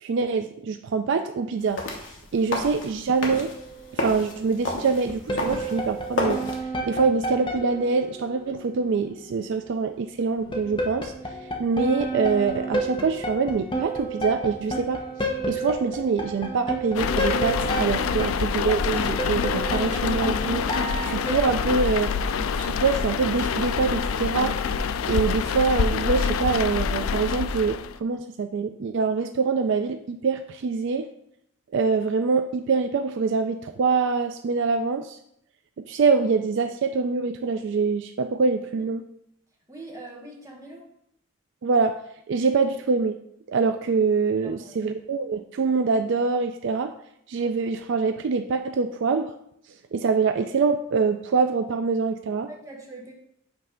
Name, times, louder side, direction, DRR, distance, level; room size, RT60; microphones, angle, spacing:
voice 1, 0.0-1.8 2.3-3.5 3.9-6.5 6.9-11.1 11.6-15.0 15.4-22.1 22.5-24.5 25.1-31.1 31.7-35.2 35.9-39.0 41.6-42.0 42.3-43.2 43.5-46.9 47.3-49.3 49.9-52.5, right 4 dB, 60° right, 7 dB, 0.3 m, -24 dB
sound 1, 1.6-6.6, left 2 dB, 60° left, 1.3 m, -32 dB
sound 2, 3.4-4.0 5.1-9.4 10.3-21.7, right 2 dB, 25° left, 0.8 m, -31 dB
sound 3, 16.9-28.0, left 6 dB, 80° left, 0.4 m, -26 dB
voice 2, 39.7-40.9 44.4-44.9 52.5-53.1, right 2 dB, 15° right, -1 dB, 1.3 m, -42 dB
7.9 x 3.2 x 5.1 m, 0.73 s
head